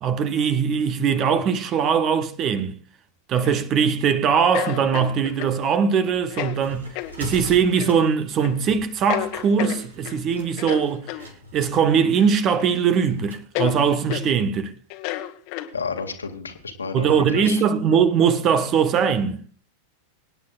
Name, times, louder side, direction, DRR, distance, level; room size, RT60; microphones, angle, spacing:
voice 1, 0.0-2.8 3.3-6.9 7.2-14.7 16.9-19.4, right 7 dB, 30° right, 1.3 m, -21 dB
sound 1, 3.4-3.9 4.5-5.6 6.3-6.6 7.0-7.1 7.8-8.0 8.4-8.6 9.1-10.2 10.6-11.3 12.2-12.7 13.0-13.1 13.6-13.8 14.1-14.3 14.9-16.0, left 15 dB, 45° left, 1.5 m, -31 dB
sound 2, 6.1-13.5, left 2 dB, 75° right, 4.2 m, -43 dB
voice 2, 15.7-17.6, left 4 dB, 75° left, 2.2 m, -31 dB
25.5 x 9.8 x 2.5 m
figure-of-eight pair, 90°, 0 cm